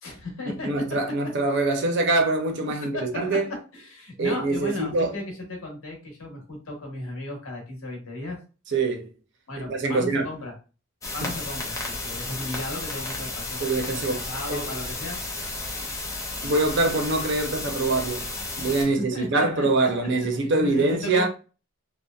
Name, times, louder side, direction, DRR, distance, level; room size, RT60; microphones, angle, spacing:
voice 1, 0.0-0.7 2.8-3.1 3.7-8.4 9.5-10.5 11.1-13.6 13.9-15.2 15.8-16.0 18.8-20.1 20.5-21.3, left 2 dB, 80° left, 1.0 m, -35 dB
voice 2, 0.6-3.5 4.2-5.2 8.7-9.1 9.6-10.3 11.1-11.3 13.6-14.2 14.5-14.7 16.4-18.3 18.6-21.3, right 2 dB, 60° right, 0.5 m, -24 dB
sound 1, 11.0-18.8, left 2 dB, 15° left, 0.5 m, -33 dB
2.7 x 2.1 x 2.2 m
head